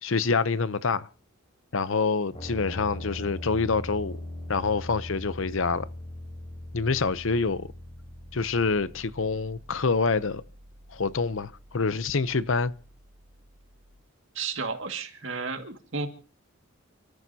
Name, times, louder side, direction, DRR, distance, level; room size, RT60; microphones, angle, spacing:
voice 1, 0.0-1.1 1.7-4.2 4.5-5.9 6.7-7.7 8.3-10.4 10.9-12.7, left 4 dB, 65° left, 0.7 m, -26 dB
sound 1, 2.3-14.0, left 1 dB, 35° left, 5.0 m, -42 dB
voice 2, 14.4-16.1, right 4 dB, 65° right, 2.2 m, -32 dB
29.5 x 14.0 x 2.8 m
head